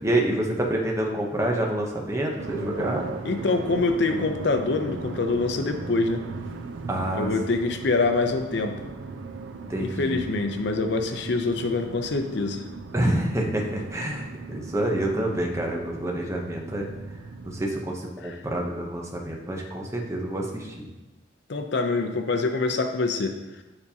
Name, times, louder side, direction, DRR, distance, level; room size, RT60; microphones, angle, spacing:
voice 1, 0.0-3.1 6.9-7.3 9.7-10.2 12.9-16.9 17.4-20.9, right 1 dB, 15° right, -1 dB, 0.7 m, -27 dB
sound 1, 2.4-17.7, right 4 dB, 75° right, 0.5 m, -38 dB
voice 2, 3.2-6.2 7.1-8.8 9.8-12.6 18.2-18.3 21.5-23.3, left 3 dB, 60° left, 5 dB, 0.5 m, -25 dB
7.0 x 5.2 x 2.8 m, 1.1 s
head